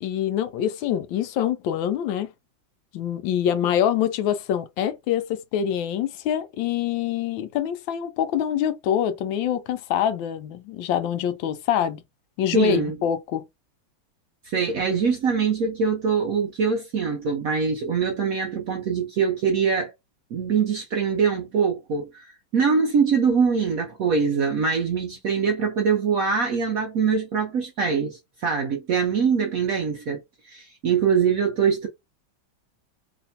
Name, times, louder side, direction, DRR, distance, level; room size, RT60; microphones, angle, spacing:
voice 1, 0.0-2.3 2.9-12.0 12.4-13.4, left 10 dB, 80° left, 1.3 m, -25 dB
voice 2, 12.5-13.0 14.4-19.9 20.3-31.9, right 6 dB, 70° right, 0.8 m, -23 dB
3.2 x 2.9 x 2.7 m
omnidirectional pair, 2.2 m